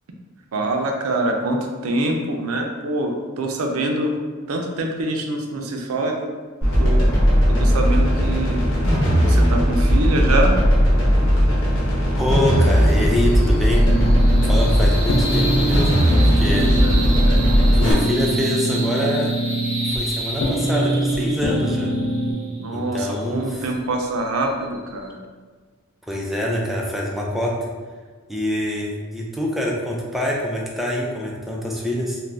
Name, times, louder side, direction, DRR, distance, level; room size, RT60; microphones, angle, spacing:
voice 1, 0.5-4.2 4.5-6.3 6.8-7.2 7.5-8.6 9.2-10.6 16.5-17.4 22.5-25.2, right 2 dB, 85° right, 2 dB, 0.4 m, -25 dB
sound 1, 6.6-17.9, equal, 65° left, 1.0 m, -17 dB
voice 2, 12.1-13.9 14.4-16.7 17.7-19.4 19.8-22.0 22.7-23.4 26.1-27.7 28.3-32.2, left 1 dB, ahead, -3 dB, 0.3 m, -25 dB
sound 2, 12.4-25.1, right 1 dB, 25° left, 1.1 m, -33 dB
sound 3, 13.8-22.3, right 1 dB, 90° left, 0.6 m, -24 dB
2.5 x 2.1 x 3.2 m, 1.4 s
head